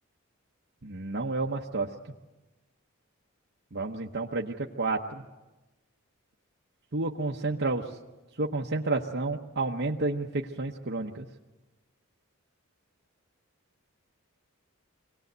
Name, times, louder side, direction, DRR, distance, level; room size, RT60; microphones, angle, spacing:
voice 1, 0.8-1.9 3.7-5.2 6.9-7.9 8.4-11.2, right 3 dB, 50° right, -1 dB, 0.9 m, -30 dB
24.0 x 18.5 x 8.0 m, 1.1 s
head